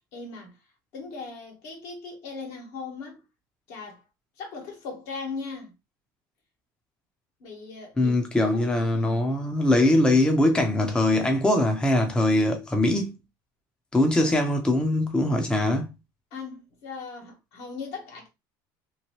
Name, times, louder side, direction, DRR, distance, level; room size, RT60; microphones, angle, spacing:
voice 1, 0.1-0.6 0.9-3.3 3.7-4.0 4.4-5.7 7.4-9.3 16.3-18.3, left 4 dB, 70° left, 1.4 m, -39 dB
voice 2, 8.0-13.1 13.9-15.9, left 1 dB, 10° left, 0.6 m, -22 dB
3.0 x 2.1 x 2.9 m
supercardioid pair, 95°, 10 cm